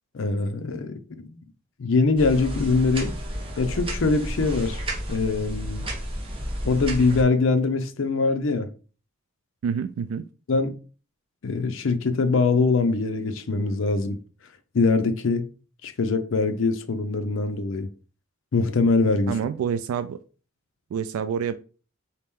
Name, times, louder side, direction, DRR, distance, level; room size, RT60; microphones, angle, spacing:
voice 1, 0.1-1.4 1.8-3.1 3.6-4.8 5.1-5.9 6.6-8.7 10.5-10.8 11.4-14.2 14.7-15.5 15.8-17.9 18.5-19.4, left 3 dB, 65° left, 0.5 m, -23 dB
sound 1, 2.2-7.2, equal, 25° right, 1.0 m, -31 dB
voice 2, 9.6-10.2 19.3-20.2 20.9-21.5, right 7 dB, 90° right, 0.3 m, -27 dB
4.1 x 2.9 x 3.5 m
head